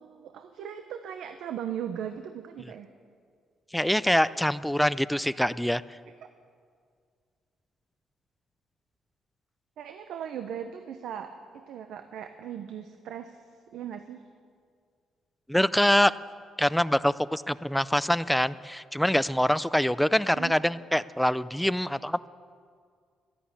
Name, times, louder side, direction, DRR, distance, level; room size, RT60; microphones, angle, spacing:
voice 1, 0.0-2.9 9.8-13.4 13.7-14.2 20.3-20.6, right 9 dB, 75° right, 8 dB, 0.7 m, -38 dB
voice 2, 3.7-5.8 15.5-16.1 16.6-22.3, equal, 5° left, 16 dB, 0.4 m, -24 dB
12.0 x 11.5 x 8.5 m, 2.1 s
cardioid pair, 90°, 0 cm